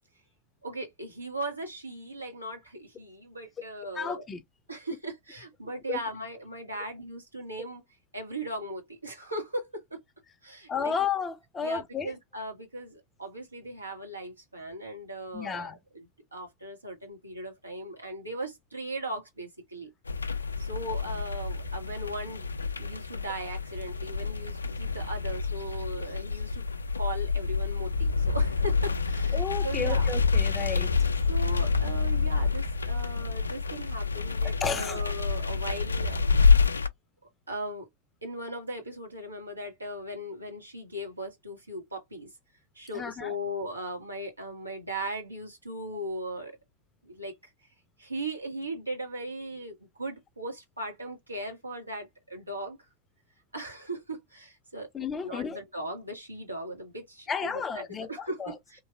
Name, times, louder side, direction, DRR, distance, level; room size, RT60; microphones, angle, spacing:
voice 1, 0.6-4.3 4.7-7.8 8.1-10.0 10.4-10.9 11.6-19.9 20.6-26.6 27.0-30.1 31.3-36.2 37.5-37.9 38.2-42.3 42.7-46.6 47.0-47.4 48.0-52.8 53.5-58.8, right 1 dB, 85° right, 1.3 m, -38 dB
voice 2, 4.0-4.4 5.9-6.0 10.7-12.1 15.3-15.8 29.3-30.9 34.4-35.0 42.9-43.3 54.9-55.6 57.3-58.5, left 6 dB, 20° left, 0.5 m, -32 dB
sound 1, 20.1-36.9, left 4 dB, 75° left, 0.3 m, -27 dB
3.2 x 2.5 x 2.5 m
figure-of-eight pair, 90°, 0 cm